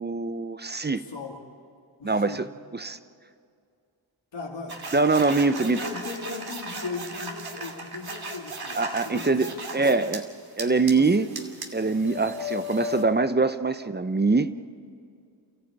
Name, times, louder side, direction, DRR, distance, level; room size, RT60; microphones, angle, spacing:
voice 1, 0.0-1.0 2.0-2.5 2.7-3.0 4.9-5.8 8.8-10.2 10.6-11.3 11.7-14.5, right 3 dB, 20° right, 12 dB, 0.8 m, -23 dB
voice 2, 0.9-1.4 2.0-2.4 4.3-10.0 10.9-11.3, left 4 dB, 65° left, -1 dB, 2.5 m, -38 dB
sound 1, 4.7-10.2 10.6-13.0, equal, 50° right, 2.6 m, -36 dB
29.0 x 14.5 x 8.9 m, 2.3 s
cardioid pair, 60°, 47 cm